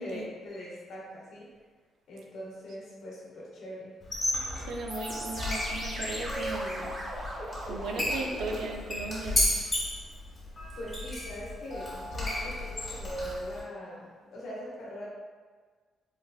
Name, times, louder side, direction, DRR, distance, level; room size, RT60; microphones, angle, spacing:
voice 1, 0.0-1.5 2.1-3.9 10.7-15.1, left 1 dB, 70° left, -5 dB, 1.1 m, -42 dB
Squeak, 4.0-13.6, left 1 dB, 30° left, 1.3 m, -33 dB
voice 2, 4.5-6.9 7.6-9.4, right 3 dB, 85° right, 1 dB, 0.5 m, -37 dB
sound 1, 4.9-8.8, right 1 dB, 30° right, 0.7 m, -39 dB
4.2 x 2.4 x 2.4 m, 1.5 s
cardioid pair, 120°, 0 cm